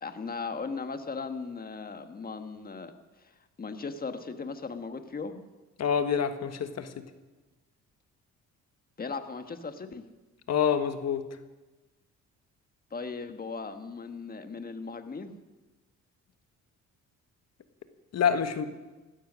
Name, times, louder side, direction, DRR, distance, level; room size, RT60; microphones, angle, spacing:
voice 1, 0.0-2.9 3.6-5.4 9.0-10.0 12.9-15.3, left 4 dB, 30° left, 8 dB, 1.5 m, -37 dB
voice 2, 5.8-7.0 10.5-11.2 18.1-18.7, left 7 dB, 60° left, 9 dB, 1.4 m, -27 dB
16.0 x 13.0 x 6.2 m, 1.2 s
cardioid pair, 90°, 30 cm